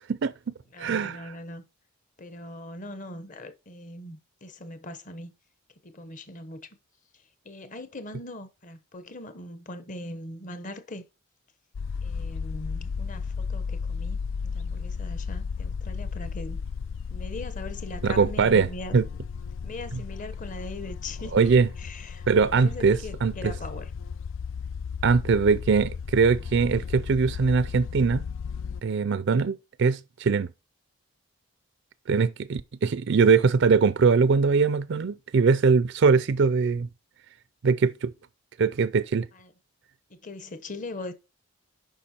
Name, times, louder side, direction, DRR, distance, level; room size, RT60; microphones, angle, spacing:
voice 1, 0.1-1.3 18.0-18.7 18.9-19.0 19.9-20.0 21.3-21.7 22.3-23.5 25.0-28.2 28.8-30.5 32.1-36.9 37.6-38.1 38.6-39.3, right 5 dB, 55° right, 0.4 m, -22 dB
voice 2, 0.7-1.6 2.2-5.3 5.8-6.6 7.4-11.0 12.0-16.6 17.1-19.0 19.6-21.5 21.8-23.9 39.3-39.5 40.1-41.1, left 1 dB, 35° left, 1.0 m, -40 dB
sound 1, 11.7-28.8, left 5 dB, 60° left, 0.3 m, -34 dB
8.6 x 5.7 x 4.3 m
head